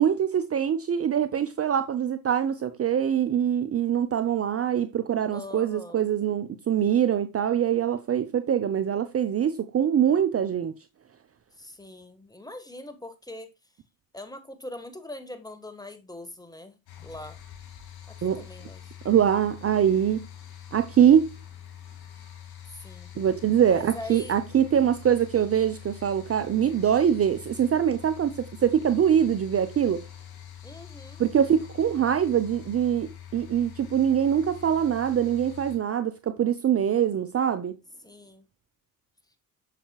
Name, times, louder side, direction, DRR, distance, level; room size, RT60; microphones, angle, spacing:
voice 1, 0.0-10.7 18.2-18.4 19.0-20.3 20.7-21.4 23.2-30.0 31.2-37.8, right 9 dB, 35° right, 0.7 m, -23 dB
voice 2, 5.3-6.1 11.5-13.5 14.1-17.4 18.1-18.9 22.7-23.1 23.7-24.4 30.6-31.2 38.0-38.5, left 2 dB, 10° left, 1.6 m, -42 dB
sound 1, 16.9-35.8, left 10 dB, 60° left, 2.7 m, -45 dB
7.4 x 6.9 x 2.3 m
hypercardioid pair, 55°, 43 cm